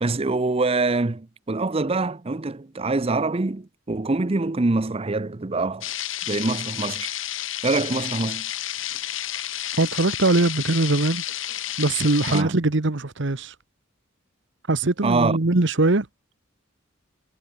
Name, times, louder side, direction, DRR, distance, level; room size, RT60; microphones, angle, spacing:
voice 1, 0.0-5.9 6.3-7.1 7.6-8.5 12.3-12.5 15.0-15.4, right 3 dB, 30° right, 0.6 m, -24 dB
sound 1, 5.8-12.4, left 12 dB, 75° left, 3.1 m, -31 dB
voice 2, 9.8-11.2 11.8-13.5 14.7-16.1, right 2 dB, 60° right, 1.2 m, -21 dB
head